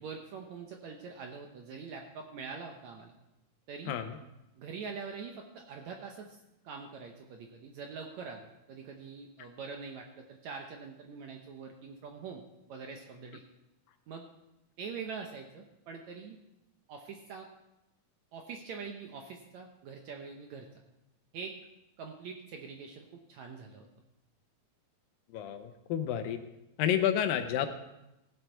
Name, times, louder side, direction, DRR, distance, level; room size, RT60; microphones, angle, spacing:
voice 1, 0.0-3.1 3.7-4.0 4.6-12.4 12.7-13.4 14.1-14.3 14.8-16.4 16.9-17.5 18.3-20.8 21.3-21.6 22.0-23.9, right 5 dB, 70° right, 3 dB, 1.8 m, -44 dB
voice 2, 3.9-4.2 25.3-26.4 26.8-27.7, left 10 dB, 80° left, 8 dB, 2.5 m, -30 dB
16.0 x 7.8 x 4.5 m, 0.91 s
omnidirectional pair, 4.2 m